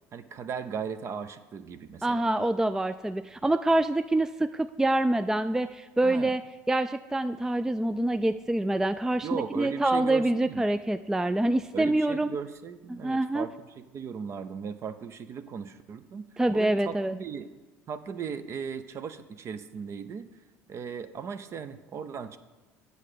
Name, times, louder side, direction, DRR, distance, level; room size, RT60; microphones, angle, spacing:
voice 1, 0.1-2.3 6.0-6.3 9.2-10.6 11.7-16.2 16.5-17.5 17.9-20.3 20.7-22.4, right 6 dB, 45° right, 10 dB, 0.6 m, -37 dB
voice 2, 2.0-6.4 6.7-12.4 12.9-13.5 16.4-17.1, right 1 dB, 10° right, 10 dB, 0.3 m, -26 dB
8.3 x 6.5 x 6.7 m, 1.2 s
hypercardioid pair, 75°, 7 cm